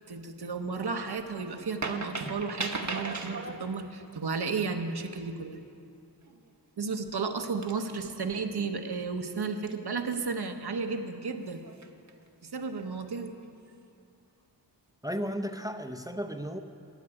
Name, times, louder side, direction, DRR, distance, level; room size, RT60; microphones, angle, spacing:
voice 1, 0.1-5.6 6.8-11.6 12.4-13.3, right 4 dB, 60° right, 6 dB, 1.0 m, -33 dB
sound 1, 0.8-1.3 1.6-3.6 6.3-6.5 7.1-7.2 7.6-8.2 9.7-10.4 11.5-12.1 12.6-12.8, right 3 dB, 40° right, 1.0 m, -38 dB
voice 2, 15.0-16.6, equal, 10° right, 7 dB, 0.6 m, -34 dB
13.5 x 7.5 x 9.7 m, 2.6 s
wide cardioid pair, 60°, 43 cm